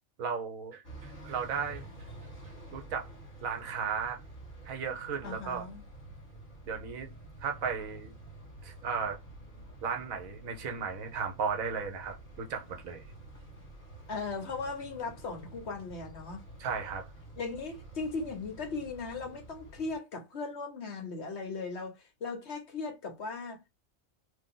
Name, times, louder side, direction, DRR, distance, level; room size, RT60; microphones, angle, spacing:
voice 1, 0.2-0.8 1.2-1.8 2.7-3.1 3.4-4.2 4.6-5.7 6.7-7.1 7.4-8.1 8.6-9.2 9.8-13.0 16.6-17.1, right 6 dB, 80° right, 1.3 m, -35 dB
sound 1, 0.8-20.0, right 2 dB, 20° left, 1.8 m, -49 dB
voice 2, 5.2-5.8 14.1-16.4 17.4-23.7, left 4 dB, 55° left, 1.2 m, -38 dB
3.0 x 2.8 x 3.7 m
omnidirectional pair, 1.4 m